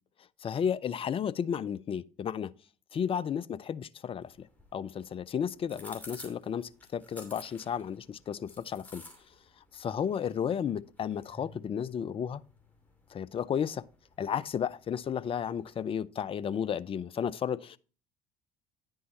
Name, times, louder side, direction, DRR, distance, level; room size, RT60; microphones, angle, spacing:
voice 1, 0.4-2.5 2.9-4.5 4.7-9.0 9.7-12.4 13.1-13.8 14.2-17.8, left 8 dB, 30° left, 0.5 m, -33 dB
sound 1, 4.2-15.8, left 1 dB, 10° left, 2.8 m, -55 dB
Keyboard (musical), 11.3-13.6, left 3 dB, 30° right, 2.7 m, -57 dB
9.7 x 5.6 x 4.1 m
hypercardioid pair, 60°, 19 cm